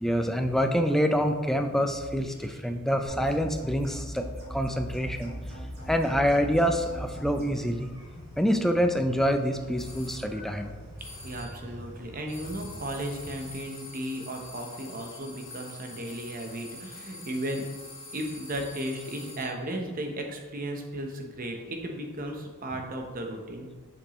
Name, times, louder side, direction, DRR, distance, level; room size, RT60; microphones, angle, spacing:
voice 1, 0.0-5.3 5.9-7.9 8.4-10.7 22.7-22.8, equal, ahead, 5 dB, 0.3 m, -26 dB
sound 1, 3.0-7.4, equal, 65° right, 1.5 m, -39 dB
sound 2, 4.8-13.5, equal, 20° right, 1.9 m, -46 dB
sound 3, 9.8-10.3 11.0-11.6 12.3-19.6, left 2 dB, 25° left, 1.5 m, -46 dB
voice 2, 11.2-17.6 18.1-23.7, right 1 dB, 40° right, 3 dB, 0.8 m, -35 dB
7.0 x 5.3 x 3.0 m, 1.4 s
head